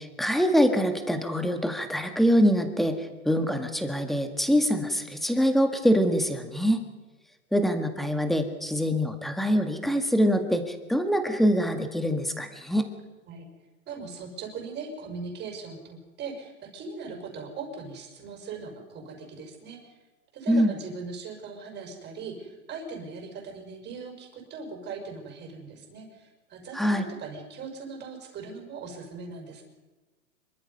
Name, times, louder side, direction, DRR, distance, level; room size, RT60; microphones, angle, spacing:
voice 1, 0.0-6.8 7.5-12.9 20.5-20.7 26.7-27.1, equal, ahead, 6 dB, 1.8 m, -24 dB
voice 2, 13.9-19.8 20.3-29.6, right 4 dB, 25° right, 3 dB, 5.5 m, -39 dB
26.0 x 23.0 x 5.5 m, 1.2 s
hypercardioid pair, 145°, 44 cm